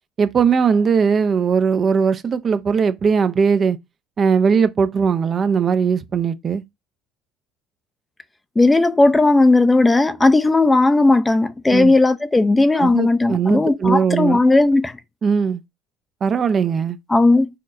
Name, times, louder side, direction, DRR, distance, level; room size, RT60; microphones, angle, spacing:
voice 1, 0.2-3.8 4.2-6.6 11.7-11.9 12.8-14.4 15.2-15.6 16.2-17.0, right 6 dB, 40° right, 0.5 m, -19 dB
voice 2, 8.6-14.9 17.1-17.5, left 2 dB, 15° left, 0.5 m, -15 dB
4.3 x 3.7 x 2.5 m
hypercardioid pair, 75°, 0 cm